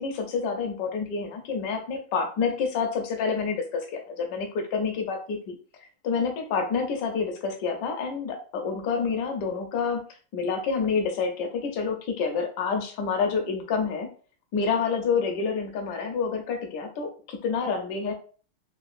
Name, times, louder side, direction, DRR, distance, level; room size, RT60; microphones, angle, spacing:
voice 1, 0.0-5.6 6.0-10.0 10.3-14.1 14.5-18.1, left 5 dB, 65° left, 3 dB, 1.2 m, -28 dB
3.8 x 2.4 x 2.5 m, 0.40 s
omnidirectional pair, 2.4 m